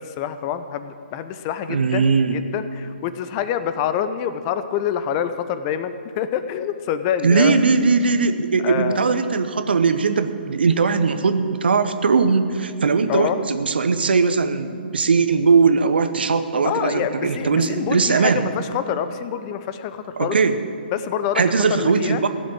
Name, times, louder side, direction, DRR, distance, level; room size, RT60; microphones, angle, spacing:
voice 1, 0.0-7.6 8.6-9.1 13.1-13.4 16.6-20.4 20.9-22.2, left 9 dB, 30° left, 11 dB, 0.7 m, -26 dB
voice 2, 1.7-2.4 7.2-18.5 20.2-20.6 21.3-22.3, right 5 dB, 65° right, 10 dB, 1.0 m, -19 dB
16.5 x 7.6 x 8.7 m, 2.4 s
figure-of-eight pair, 130°, 6 cm